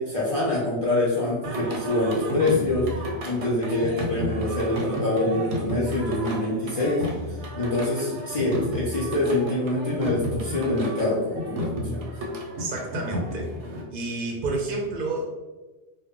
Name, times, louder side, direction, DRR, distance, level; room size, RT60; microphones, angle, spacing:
voice 1, 0.0-7.1 7.5-12.0, left 2 dB, 55° left, -7 dB, 0.4 m, -25 dB
Singing, 1.4-13.8, equal, 85° right, 0.9 m, -32 dB
voice 2, 12.6-13.5 13.9-15.3, right 3 dB, 60° right, -1 dB, 0.6 m, -29 dB
2.1 x 2.0 x 3.5 m, 1.2 s
omnidirectional pair, 1.2 m